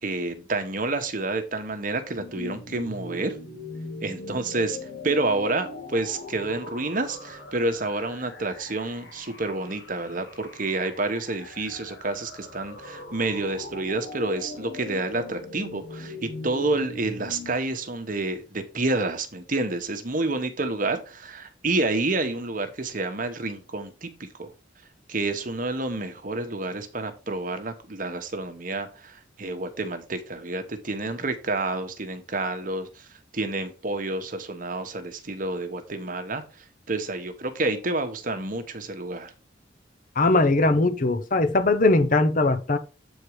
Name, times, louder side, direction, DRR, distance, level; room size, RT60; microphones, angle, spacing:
voice 1, 0.0-3.4 4.0-4.8 5.0-24.1 24.4-24.5 25.1-33.1 33.3-36.4 36.9-39.3, right 2 dB, 45° right, 1.1 m, -29 dB
sound 1, 2.2-17.6, left 2 dB, 65° left, 1.3 m, -40 dB
voice 2, 40.2-42.8, left 2 dB, 45° left, 0.8 m, -20 dB
8.1 x 4.5 x 4.7 m
head